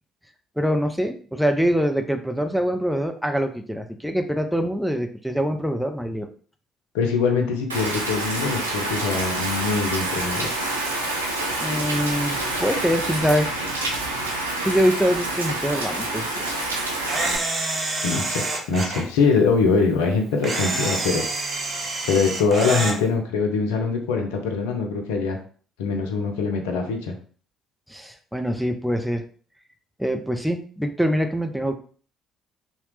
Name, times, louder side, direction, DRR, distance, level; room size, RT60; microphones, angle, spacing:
voice 1, 0.6-6.3 11.6-13.9 14.6-16.5 27.9-29.2 30.0-31.8, equal, ahead, 6 dB, 0.5 m, -24 dB
voice 2, 6.9-10.5 18.0-21.2 22.1-25.4 25.8-27.1, left 4 dB, 75° left, 3 dB, 0.4 m, -23 dB
Rain, 7.7-17.3, right 2 dB, 90° right, 0.3 m, -27 dB
Camera, 17.1-19.0 20.4-23.0, right 2 dB, 45° right, 0.6 m, -27 dB
2.8 x 2.0 x 3.2 m, 0.43 s
hypercardioid pair, 50°, 0 cm